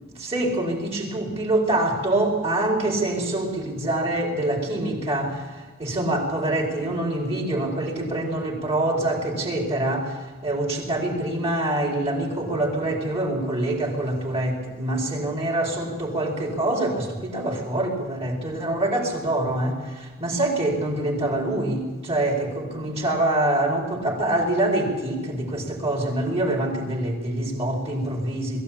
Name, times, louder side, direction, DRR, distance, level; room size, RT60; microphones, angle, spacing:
voice 1, 0.1-28.6, right 1 dB, 30° right, 0 dB, 4.6 m, -25 dB
21.5 x 15.0 x 8.7 m, 1.3 s
head